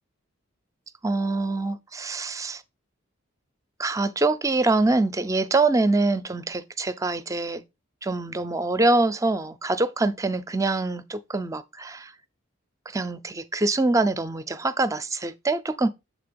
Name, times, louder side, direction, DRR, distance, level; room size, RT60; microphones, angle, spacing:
voice 1, 1.0-2.6 3.8-7.6 8.0-12.1 12.9-15.9, right 2 dB, 15° right, 0.4 m, -24 dB
7.4 x 3.8 x 5.1 m
head